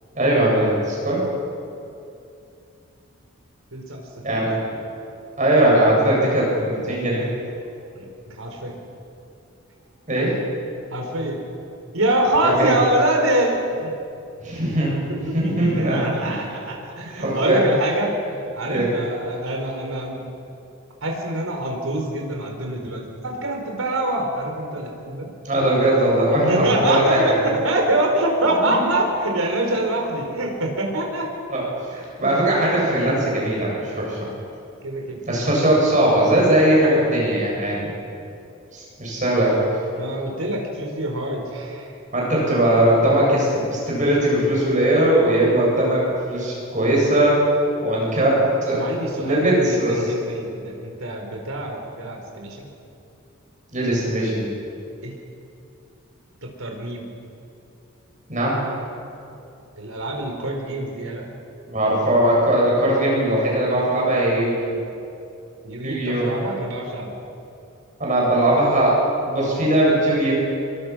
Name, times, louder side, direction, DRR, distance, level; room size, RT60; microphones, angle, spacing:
voice 1, 0.1-1.2 4.2-4.5 5.4-7.2 10.1-10.3 12.4-12.7 14.4-16.3 17.2-17.6 18.7-18.9 25.4-27.4 28.6-28.9 31.5-31.6 31.9-34.3 35.3-37.9 38.7-39.6 42.1-46.0 46.3-47.4 47.8-48.8 49.1-49.9 53.7-54.5 58.3-58.6 61.7-64.7 65.8-66.3 68.0-70.3, right 1 dB, 35° right, -4 dB, 7.8 m, -20 dB
voice 2, 3.7-4.0 4.3-5.0 7.9-8.7 10.9-11.4 11.9-13.9 15.1-20.2 21.0-25.3 26.3-31.3 32.2-32.4 34.8-35.2 39.9-41.9 48.7-52.7 55.0-55.1 56.4-57.1 59.8-61.3 65.6-67.1, right 1 dB, 80° right, 1 dB, 4.3 m, -25 dB
24.5 x 22.5 x 6.3 m, 2.6 s
head